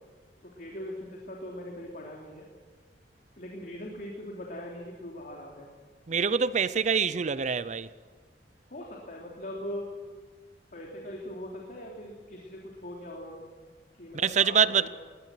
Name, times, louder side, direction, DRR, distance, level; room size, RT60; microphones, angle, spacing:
voice 1, 0.4-2.5 3.4-5.7 8.7-9.9 10.7-13.4 14.0-14.9, left 1 dB, 50° left, 3.2 m, -41 dB
voice 2, 6.1-7.9 14.1-14.9, right 6 dB, 40° right, 0.5 m, -25 dB
21.0 x 18.5 x 7.7 m
head